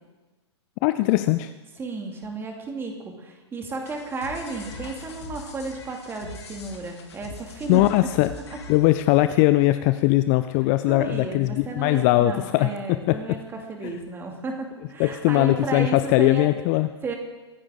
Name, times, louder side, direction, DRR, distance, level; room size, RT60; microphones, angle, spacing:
voice 1, 0.8-1.5 7.7-8.3 8.7-13.4 13.8-13.9 15.0-16.9, left 17 dB, 30° left, 12 dB, 0.5 m, -20 dB
voice 2, 1.8-7.8 10.9-16.4 17.0-17.1, right 3 dB, 15° right, 3 dB, 2.4 m, -33 dB
sound 1, 3.8-9.2, left 3 dB, 65° left, 2.6 m, -41 dB
24.0 x 9.8 x 3.8 m, 1.2 s
figure-of-eight pair, 110°, 15 cm